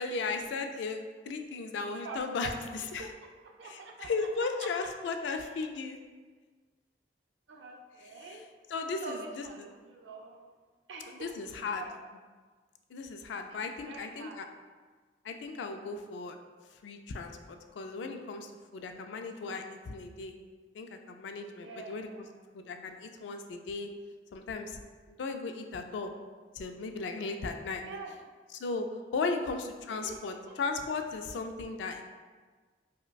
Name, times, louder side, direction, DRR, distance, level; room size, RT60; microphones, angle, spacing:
voice 1, 0.0-2.5 2.9-3.1 3.6-6.0 8.7-9.4 11.1-11.8 12.9-14.5 15.2-16.4 16.8-20.4 20.7-22.1 22.5-23.9 24.3-24.8 25.2-26.1 26.6-27.8 28.6-28.9 29.1-32.0, left 4 dB, 85° left, 6 dB, 0.3 m, -36 dB
voice 2, 2.0-2.6 3.0-4.3 4.6-4.7 5.2-5.4 7.5-8.5 9.0-10.5 10.9-12.1 13.5-14.4 21.6-22.4 27.8-28.2 29.3-29.5 29.9-30.6, right 4 dB, 85° right, 2 dB, 0.5 m, -46 dB
4.8 x 2.1 x 2.2 m, 1.4 s
head